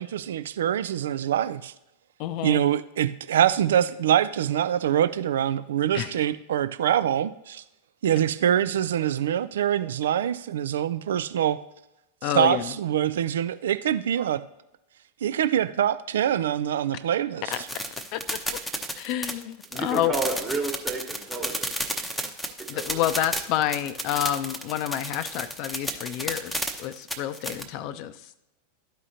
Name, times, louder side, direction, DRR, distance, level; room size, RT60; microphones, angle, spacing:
voice 1, 0.0-1.7 2.4-7.6 8.0-11.6 12.3-14.4 15.2-17.7, right 10 dB, 60° right, 13 dB, 0.4 m, -24 dB
voice 2, 2.2-2.6 5.9-6.1 12.2-12.7 17.5-17.6 18.1-18.6 19.0-20.1 22.7-28.1, left 12 dB, 45° left, 13 dB, 0.5 m, -29 dB
sound 1, 17.5-27.6, equal, 5° left, 0.8 m, -32 dB
voice 3, 19.7-21.7 22.7-23.0, right 3 dB, 20° right, 1 dB, 1.3 m, -31 dB
12.5 x 4.9 x 2.7 m, 0.87 s
figure-of-eight pair, 90°, 0 cm